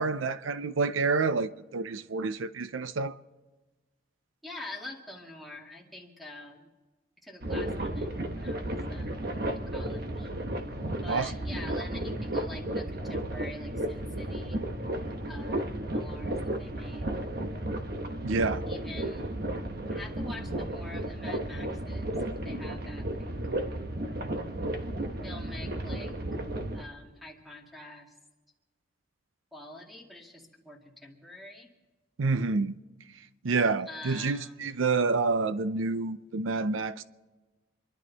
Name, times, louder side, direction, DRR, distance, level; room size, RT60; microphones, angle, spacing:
voice 1, 0.0-3.1 11.1-11.3 18.2-18.6 32.2-32.7 33.4-37.0, right 4 dB, 85° right, 0.6 m, -28 dB
voice 2, 4.4-6.7 7.2-9.1 9.5-10.3 11.0-14.6 15.3-17.1 18.7-19.3 19.9-22.1 22.4-23.3 25.2-26.2 26.7-28.1 29.5-31.7 33.9-34.8, left 2 dB, ahead, 2.2 m, -46 dB
sound 1, 7.4-26.8, right 1 dB, 50° right, 1.2 m, -33 dB
27.0 x 11.5 x 4.1 m
head